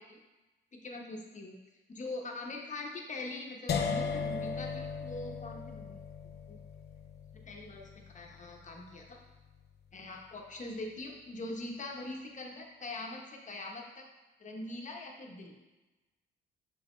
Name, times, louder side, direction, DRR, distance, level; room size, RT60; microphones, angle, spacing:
voice 1, 0.7-1.6 1.9-6.0 6.5-6.6 7.3-7.9 8.1-9.2 9.9-14.1 14.4-15.5, left 2 dB, 40° left, 1 dB, 1.2 m, -42 dB
sound 1, 3.7-9.6, left 5 dB, 55° left, 0.6 m, -38 dB
6.0 x 5.2 x 3.2 m, 1.1 s
cardioid pair, 90°, 20 cm